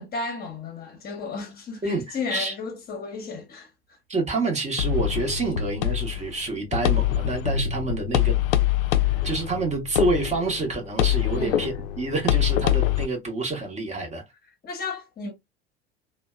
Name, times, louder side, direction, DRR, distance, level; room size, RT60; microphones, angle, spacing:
voice 1, 0.0-4.0 11.3-11.6 14.6-15.3, left 4 dB, 30° left, 0.9 m, -34 dB
voice 2, 1.8-2.5 4.1-8.4 9.2-14.2, right 3 dB, 20° right, 0.9 m, -28 dB
sound 1, 4.8-13.1, left 12 dB, 65° left, 0.4 m, -24 dB
2.7 x 2.1 x 2.3 m
figure-of-eight pair, 70°, 31 cm